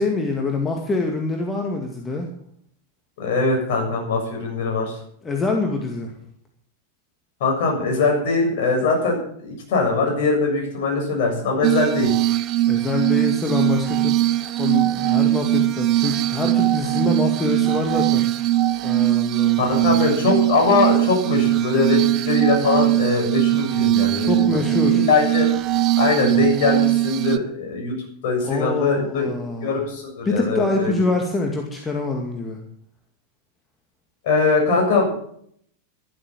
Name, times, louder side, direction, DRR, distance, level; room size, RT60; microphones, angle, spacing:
voice 1, 0.0-2.3 5.2-6.1 12.7-20.0 24.2-25.1 28.4-29.8 30.3-32.6, left 3 dB, 15° left, 2 dB, 2.3 m, -25 dB
voice 2, 3.2-5.0 7.4-12.1 19.6-25.5 26.0-27.9 28.2-29.3 29.6-31.0 34.2-35.1, left 3 dB, 50° left, 0 dB, 7.3 m, -21 dB
Glass, 11.6-27.4, right 15 dB, 35° right, 0.9 m, -20 dB
12.5 x 12.0 x 7.5 m, 0.66 s
figure-of-eight pair, 90°, 0 cm